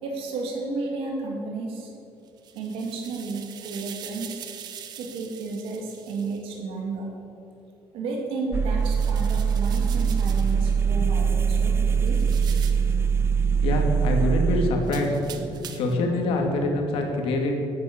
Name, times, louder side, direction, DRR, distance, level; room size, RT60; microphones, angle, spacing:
voice 1, 0.0-1.9 2.5-4.4 5.0-7.1 7.9-12.2, right 3 dB, 85° right, 0 dB, 2.7 m, -32 dB
sound 1, 2.3-6.4 8.8-10.6 12.1-12.9 14.8-16.0, right 9 dB, 50° right, 1.0 m, -43 dB
sound 2, 8.5-14.7, right 6 dB, 25° right, 0.5 m, -22 dB
sound 3, 9.8-16.6, left 1 dB, 5° left, 1.4 m, -39 dB
voice 2, 13.4-15.2 15.5-17.6, left 2 dB, 80° left, 2 dB, 2.7 m, -25 dB
11.5 x 10.5 x 8.8 m, 2.8 s
cardioid pair, 180°, 9 cm